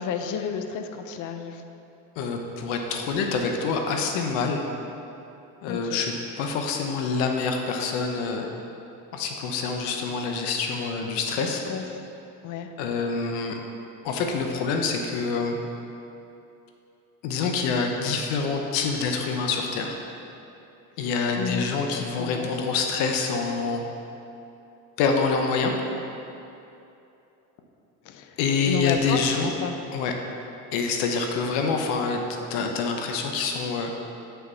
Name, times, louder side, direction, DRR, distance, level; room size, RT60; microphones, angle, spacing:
voice 1, 0.0-1.6 5.7-6.0 11.7-11.8 12.4-12.7 21.4-21.7 21.9-22.5 28.1-28.3 28.7-29.7, left 7 dB, 45° left, 6 dB, 0.6 m, -31 dB
voice 2, 2.2-4.6 5.6-8.5 9.1-11.6 12.8-13.6 14.0-15.6 17.2-20.0 21.0-23.8 25.0-25.7 28.4-29.5 29.9-30.1 30.7-32.2 32.5-33.9, left 4 dB, 75° left, 3 dB, 1.0 m, -26 dB
7.4 x 5.8 x 4.0 m, 2.8 s
supercardioid pair, 100°, 43 cm